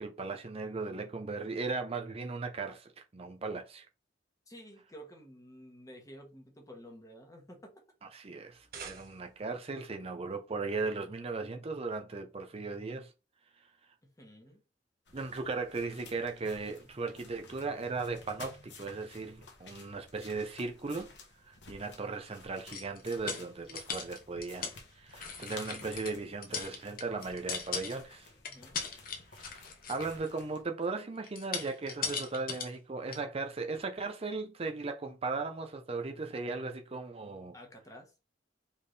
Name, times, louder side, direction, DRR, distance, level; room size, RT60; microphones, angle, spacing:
voice 1, 0.0-3.9 8.1-13.1 15.1-21.1 21.4-28.3 29.3-37.5, right 3 dB, 35° right, 0.6 m, -37 dB
voice 2, 4.5-7.8 14.2-14.6 28.5-28.8 37.5-38.1, equal, 20° left, 1.4 m, -51 dB
sound 1, 8.4-9.6, right 5 dB, 55° right, 1.3 m, -48 dB
sound 2, 15.1-30.6, left 3 dB, 70° left, 1.2 m, -54 dB
sound 3, 22.7-24.8 25.1-26.1 26.4-28.1 28.4-30.3 31.2-32.7 33.1-33.2, left 6 dB, 55° left, 0.9 m, -39 dB
4.3 x 3.5 x 3.2 m
head